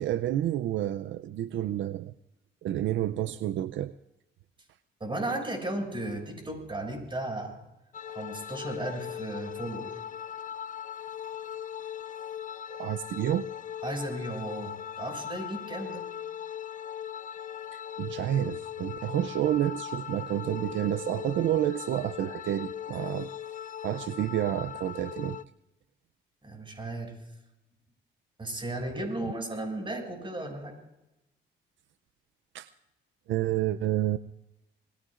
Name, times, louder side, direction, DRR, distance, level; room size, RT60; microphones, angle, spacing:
voice 1, 0.0-2.1 2.6-3.9 12.7-13.5 17.7-23.3 23.8-25.4 32.5-32.7 33.3-34.2, right 12 dB, 70° right, 12 dB, 0.5 m, -29 dB
voice 2, 5.0-7.6 8.1-10.0 13.8-16.1 26.4-27.2 28.4-30.8, right 1 dB, 25° right, 2 dB, 6.6 m, -35 dB
sound 1, 7.9-25.4, left 9 dB, 40° left, 0.5 m, -39 dB
27.5 x 21.0 x 2.5 m, 0.93 s
cardioid pair, 90°, 20 cm